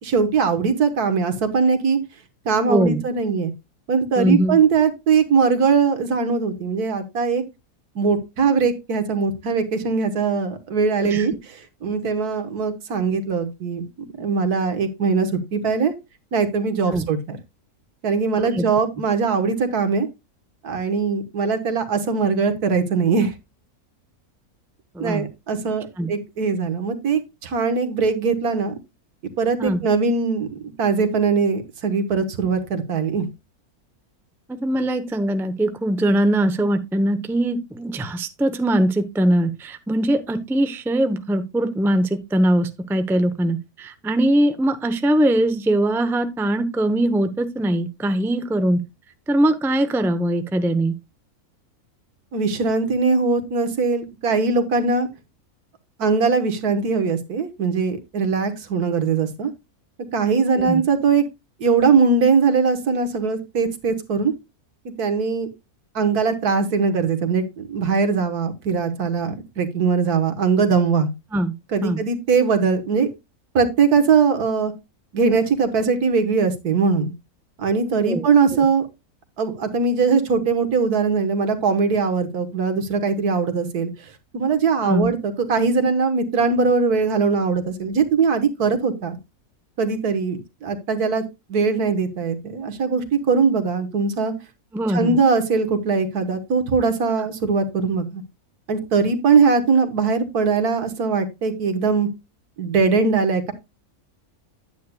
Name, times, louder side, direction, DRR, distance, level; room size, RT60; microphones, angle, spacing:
voice 1, 0.0-2.0 2.5-3.5 3.9-7.4 8.0-13.8 14.2-15.9 16.3-17.4 18.0-20.1 20.6-23.3 25.0-28.8 29.4-30.5 30.8-33.3 52.3-55.1 56.0-59.5 60.1-61.2 61.6-64.3 65.0-65.5 66.0-71.1 71.7-73.1 73.5-74.7 75.1-77.1 77.6-78.9 79.4-89.2 89.8-91.2 91.5-94.3 94.9-98.2 98.7-102.1 102.6-103.5, right 5 dB, 90° right, 9 dB, 1.7 m, -21 dB
voice 2, 2.7-3.0 4.2-4.6 11.0-11.3 16.9-17.1 18.4-18.6 24.9-25.3 26.0-26.1 29.6-29.8 34.5-48.8 49.3-50.9 60.6-60.8 71.3-71.5 71.8-72.0 78.0-78.3 78.5-78.6 84.8-85.1 94.7-95.2, right 1 dB, 5° right, 9 dB, 0.3 m, -21 dB
9.5 x 9.3 x 2.2 m, 0.23 s
omnidirectional pair, 1.6 m